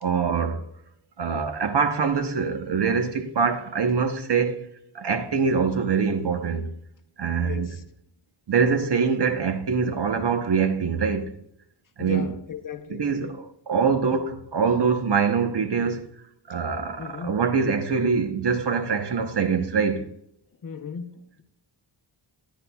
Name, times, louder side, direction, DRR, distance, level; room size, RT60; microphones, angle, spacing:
voice 1, 0.0-0.6 1.2-4.7 4.9-6.7 7.2-7.7 8.5-11.3 12.0-12.3 12.9-16.1 16.5-20.1, right 5 dB, 55° right, 1.0 m, -24 dB
voice 2, 7.4-7.8 12.0-13.3 17.0-17.4 20.6-21.4, left 7 dB, 40° left, 0.9 m, -37 dB
14.0 x 10.0 x 2.3 m
wide cardioid pair, 145°, 47 cm